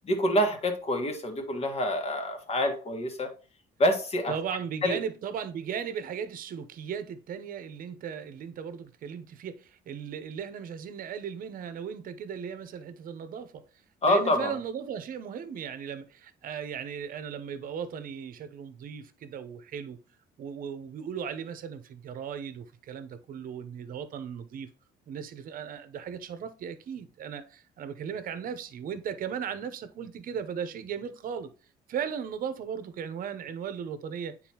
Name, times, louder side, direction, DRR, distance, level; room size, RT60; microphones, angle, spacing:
voice 1, 0.0-3.3 3.8-4.3 4.8-5.0 14.0-14.6, left 1 dB, 35° left, 1.6 m, -26 dB
voice 2, 4.3-13.6 14.0-20.0 20.4-24.7 25.1-31.5 31.9-34.4, right 7 dB, 55° right, 0.8 m, -37 dB
8.9 x 4.1 x 2.9 m
cardioid pair, 110°, 17 cm